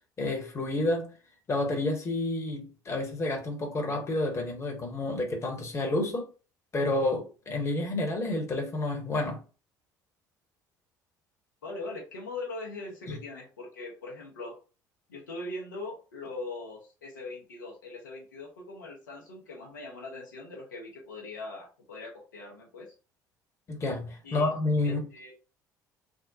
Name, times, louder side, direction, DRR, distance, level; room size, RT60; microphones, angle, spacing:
voice 1, 0.2-1.1 1.5-6.3 6.7-9.4 13.1-13.2 23.7-25.0, left 2 dB, 30° left, 0.9 m, -29 dB
voice 2, 11.6-14.6 15.1-22.9 24.2-24.5 24.8-25.3, left 2 dB, 75° left, 0.8 m, -41 dB
3.5 x 2.1 x 2.7 m
figure-of-eight pair, 55°, 10 cm